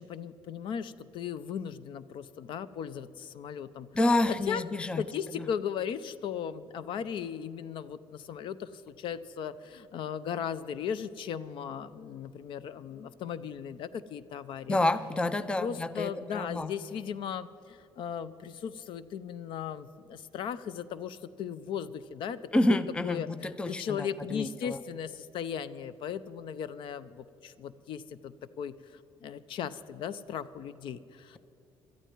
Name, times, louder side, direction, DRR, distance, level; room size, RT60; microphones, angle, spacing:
voice 1, 0.0-3.9 4.3-4.6 5.0-14.8 15.6-22.4 22.7-22.8 23.0-31.4, left 8 dB, 60° left, 16 dB, 0.6 m, -37 dB
voice 2, 3.9-5.0 5.4-5.5 14.7-16.7 22.5-24.8, left 1 dB, 10° left, 14 dB, 0.5 m, -28 dB
18.5 x 13.0 x 4.6 m, 2.8 s
cardioid pair, 130°, 9 cm